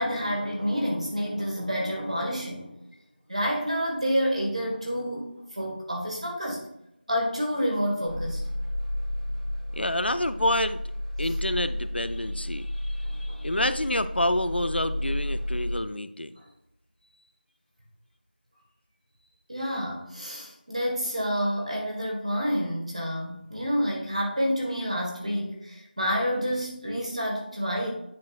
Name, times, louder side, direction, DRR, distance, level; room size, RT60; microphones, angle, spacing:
voice 1, 0.0-2.7 3.3-6.6 7.1-8.4 13.0-13.4 16.4-16.5 19.5-27.9, equal, 40° right, 0 dB, 1.8 m, -29 dB
sound 1, 8.0-15.9, left 1 dB, 25° left, 1.8 m, -32 dB
voice 2, 9.7-10.8 11.2-16.4, left 1 dB, 80° left, 12 dB, 0.5 m, -28 dB
9.1 x 5.3 x 2.5 m, 0.77 s
figure-of-eight pair, 175°, 6 cm